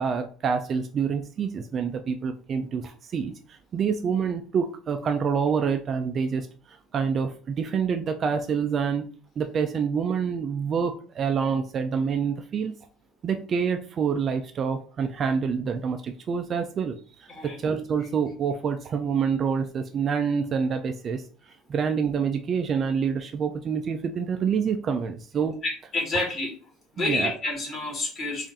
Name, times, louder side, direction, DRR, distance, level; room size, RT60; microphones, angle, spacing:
voice 1, 0.0-9.1 9.4-12.8 13.2-21.2 21.7-25.6 27.0-27.3, right 6 dB, 30° right, 7 dB, 0.3 m, -27 dB
voice 2, 25.6-26.5 26.9-28.5, left 2 dB, 30° left, -1 dB, 1.5 m, -29 dB
3.6 x 2.5 x 4.0 m, 0.41 s
cardioid pair, 160°, 0 cm